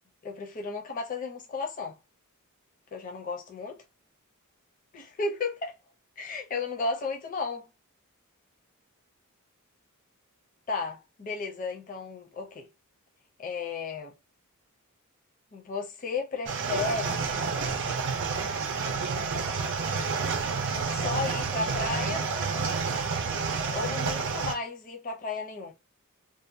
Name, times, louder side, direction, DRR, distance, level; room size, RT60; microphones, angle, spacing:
voice 1, 0.2-2.0 2.9-3.8 4.9-5.8 6.2-7.7 10.7-12.7 13.4-14.1 15.5-17.3 20.9-22.3 23.7-25.7, left 4 dB, 35° left, 0.5 m, -34 dB
sound 1, 16.5-24.5, right 5 dB, 55° right, 0.5 m, -29 dB
2.6 x 2.1 x 2.6 m
head